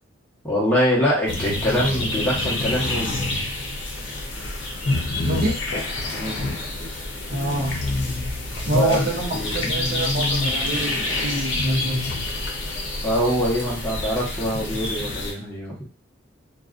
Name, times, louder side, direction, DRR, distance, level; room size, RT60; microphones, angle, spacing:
voice 1, 0.4-3.2 6.1-6.4 8.7-9.0 9.3-9.7 13.0-15.9, equal, 10° left, -6 dB, 0.9 m, -24 dB
sound 1, 1.3-15.3, left 2 dB, 65° left, 0.6 m, -27 dB
voice 2, 5.2-5.6 7.3-7.8 8.7-12.1, right 2 dB, 50° right, -2 dB, 0.6 m, -26 dB
2.5 x 2.2 x 2.4 m, 0.34 s
head